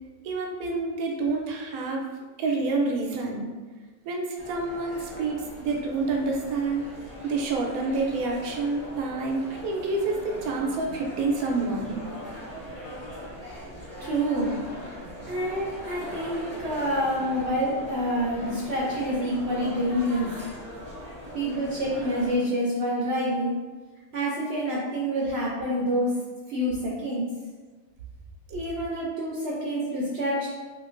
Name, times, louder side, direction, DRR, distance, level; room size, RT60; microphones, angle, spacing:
voice 1, 0.2-2.0 2.4-3.5 4.1-6.8 7.2-12.0 28.9-29.0, right 3 dB, 90° right, 1 dB, 1.1 m, -28 dB
sound 1, 4.4-22.4, equal, 10° left, 0.8 m, -40 dB
voice 2, 14.0-14.5 15.3-20.3 21.3-23.6 24.1-26.1 26.5-27.3 28.5-30.5, equal, 65° right, -4 dB, 0.6 m, -27 dB
3.1 x 2.9 x 2.4 m, 1.3 s
omnidirectional pair, 1.5 m